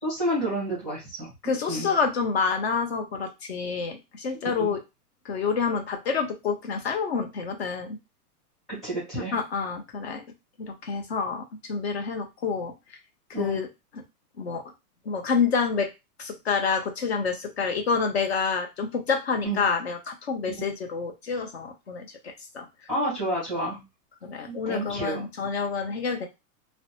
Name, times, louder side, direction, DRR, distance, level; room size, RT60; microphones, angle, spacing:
voice 1, 0.0-1.9 4.5-4.7 8.7-9.3 13.3-13.6 19.4-19.6 20.6-20.7 22.9-23.8 24.5-25.2, right 1 dB, ahead, -9 dB, 0.8 m, -30 dB
voice 2, 1.4-4.8 5.2-8.0 9.2-10.2 10.6-12.7 13.4-13.7 13.9-14.0 14.4-14.6 15.1-15.9 16.2-22.7 24.2-26.3, left 5 dB, 40° left, 4 dB, 0.6 m, -28 dB
2.4 x 2.0 x 2.9 m, 0.23 s
hypercardioid pair, 175°, 48 cm